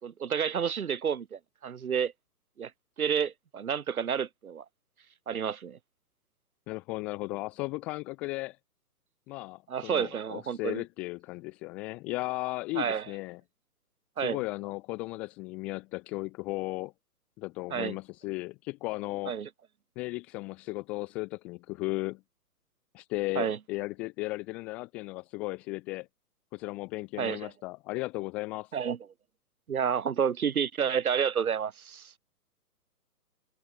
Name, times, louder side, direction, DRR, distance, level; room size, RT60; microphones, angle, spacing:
voice 1, 0.0-2.1 2.6-2.7 3.0-4.6 5.3-5.8 9.7-10.8 12.8-13.1 14.2-14.4 17.7-17.9 19.3-19.5 23.3-23.6 27.2-27.5 28.7-29.0 29.7-32.1, right 7 dB, 60° right, 3.0 m, -30 dB
voice 2, 6.7-8.6 9.3-13.4 14.2-16.9 17.4-19.3 20.0-22.2 22.9-26.1 26.5-28.7, left 23 dB, 5° left, 0.5 m, -35 dB
figure-of-eight pair, 135°, 47 cm